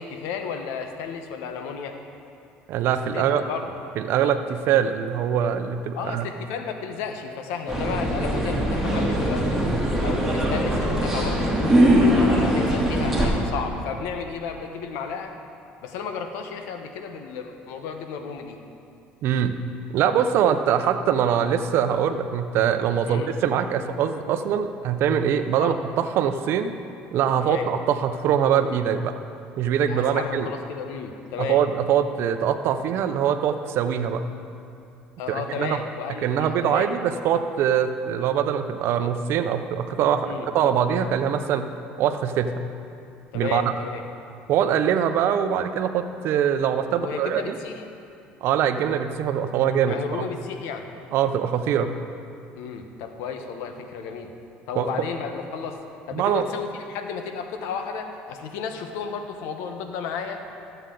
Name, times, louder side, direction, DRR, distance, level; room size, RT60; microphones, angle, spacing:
voice 1, 0.0-2.0 3.1-3.7 5.9-9.6 10.0-11.5 12.0-15.3 15.8-18.6 23.0-23.3 25.6-25.8 27.4-27.7 29.9-31.6 35.2-36.9 40.2-40.5 43.3-44.0 46.9-47.8 49.9-50.9 52.5-54.3 54.7-55.8 56.1-60.4, left 6 dB, 80° left, 6 dB, 1.0 m, -33 dB
voice 2, 2.7-3.4 4.0-6.3 19.2-19.6 19.9-26.8 27.1-29.1 29.6-30.5 31.4-34.2 35.3-35.8 36.2-41.7 42.0-42.5 43.3-43.7 44.5-47.6 48.4-50.0 51.1-52.0 54.8-54.9 56.1-56.5, right 8 dB, 65° right, 9 dB, 0.6 m, -23 dB
sound 1, 7.7-13.3, equal, 5° right, 2.6 m, -21 dB
14.5 x 7.9 x 3.8 m, 2.5 s
supercardioid pair, 85°, 4 cm